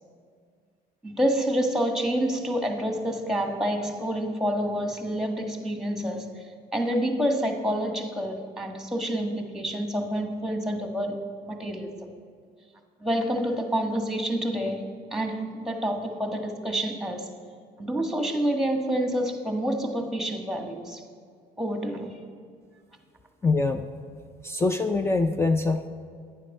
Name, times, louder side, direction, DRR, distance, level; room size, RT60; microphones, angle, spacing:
voice 1, 1.0-6.4 6.7-11.2 11.5-11.9 13.0-17.3 17.8-21.0 21.6-22.1, equal, 5° right, 3 dB, 1.5 m, -28 dB
voice 2, 23.4-23.9 24.4-25.9, left 3 dB, 15° left, 8 dB, 0.5 m, -24 dB
11.0 x 9.5 x 5.4 m, 2.1 s
cardioid pair, 110°, 17 cm